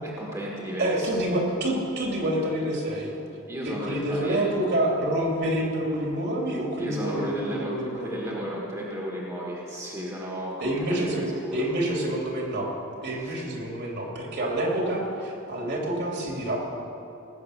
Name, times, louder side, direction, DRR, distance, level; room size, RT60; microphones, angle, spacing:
voice 1, 0.0-1.2 3.5-4.4 6.8-11.7 13.2-13.5, equal, 15° right, -3 dB, 1.7 m, -34 dB
voice 2, 0.8-3.2 3.6-8.3 10.6-12.7 13.0-16.6, right 1 dB, 50° right, -1 dB, 2.8 m, -27 dB
18.5 x 8.3 x 6.5 m, 2.9 s
head